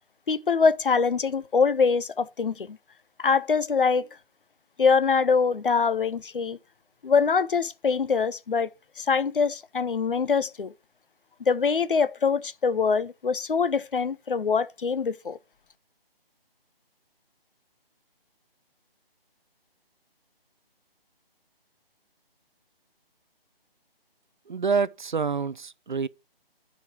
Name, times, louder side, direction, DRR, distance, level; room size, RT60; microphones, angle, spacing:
voice 1, 0.3-2.8 3.2-4.1 4.8-6.6 7.0-8.7 9.0-10.7 11.5-15.4, left 5 dB, 60° left, 0.6 m, -24 dB
voice 2, 24.5-26.1, right 5 dB, 55° right, 0.4 m, -27 dB
10.0 x 5.2 x 4.4 m
figure-of-eight pair, 150°, 30 cm